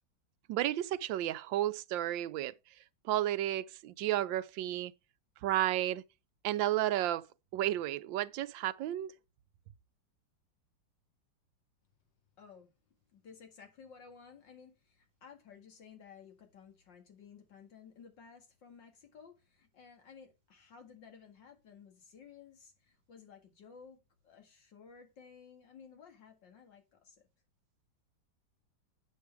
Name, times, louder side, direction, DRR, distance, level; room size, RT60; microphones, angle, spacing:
voice 1, 0.5-2.5 3.0-4.9 5.4-6.0 6.4-7.3 7.5-9.1, right 13 dB, 85° right, 1.3 m, -32 dB
voice 2, 12.4-12.7 13.1-27.2, left 6 dB, 75° left, 2.6 m, -56 dB
8.5 x 7.4 x 3.5 m
omnidirectional pair, 2.0 m